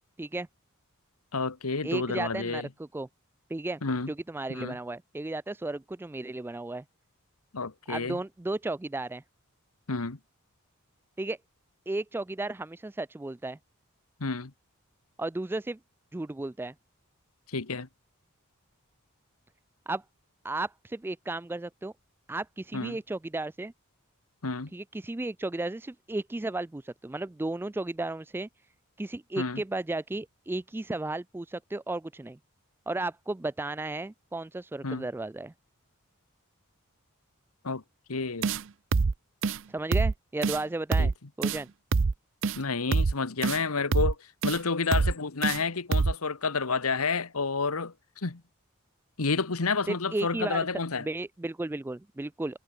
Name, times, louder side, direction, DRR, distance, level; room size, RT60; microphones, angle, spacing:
voice 1, 1.3-2.7 3.8-4.1 4.5-4.8 7.5-8.2 9.9-10.2 14.2-14.5 17.5-17.9 22.7-23.0 24.4-24.7 29.4-29.6 34.8-35.1 37.6-37.8 38.1-38.5 41.0-41.1 42.6-44.2 44.4-48.4 49.2-51.1, left 4 dB, 75° left, 1.4 m, -30 dB
voice 2, 1.8-3.1 3.5-3.8 4.1-6.8 7.9-9.2 11.2-11.4 11.9-13.6 15.2-15.8 16.1-16.7 19.9-20.0 20.4-21.9 22.3-23.7 24.7-28.5 29.0-32.4 32.9-35.5 39.7-41.1 41.4-41.7 49.9-50.7 51.0-52.6, right 2 dB, 10° right, 0.3 m, -34 dB
sound 1, 38.4-38.6 38.9-39.1 39.4-39.6 39.9-40.1 40.4-40.6 40.9-41.1 41.4-41.6 41.9-42.1 42.4-42.6 42.9-43.1 43.4-43.6 43.9-44.1 44.4-44.6 44.9-45.1 45.4-45.6 45.9-46.1, right 4 dB, 60° right, 0.6 m, -25 dB
head